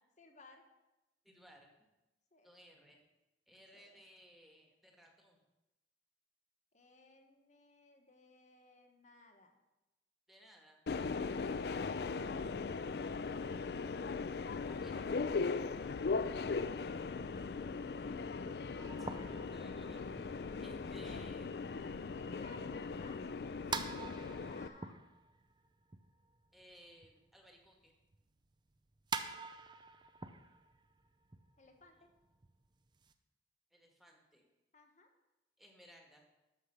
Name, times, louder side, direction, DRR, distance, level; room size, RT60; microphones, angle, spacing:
voice 1, 0.2-0.6 2.3-2.5 3.7-4.0 6.7-9.5 22.1-23.7 24.2-25.0 31.6-32.1 34.7-35.1, left 2 dB, 40° left, 4 dB, 1.2 m, -60 dB
voice 2, 1.2-1.7 2.4-3.0 3.5-5.4 10.3-10.8 14.7-15.0 19.0-21.6 26.5-27.9 31.9-32.0 33.7-34.5 35.6-36.2, equal, ahead, 1 dB, 1.5 m, -61 dB
Subway metro underground, 10.9-24.7, left 4 dB, 60° left, 0.4 m, -39 dB
sound 1, 18.8-27.3 27.7-33.1, right 4 dB, 25° right, 0.5 m, -46 dB
11.5 x 5.0 x 6.8 m, 0.98 s
head